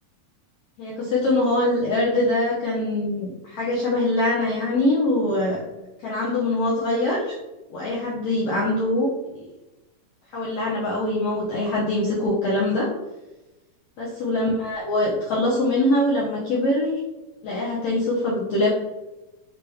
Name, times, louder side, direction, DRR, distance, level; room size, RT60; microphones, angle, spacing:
voice 1, 0.8-5.6 6.0-7.3 7.7-9.5 10.3-12.9 14.0-17.0 17.4-18.7, left 1 dB, 85° left, -6 dB, 1.3 m, -23 dB
6.5 x 2.3 x 3.4 m, 1.1 s
omnidirectional pair, 3.9 m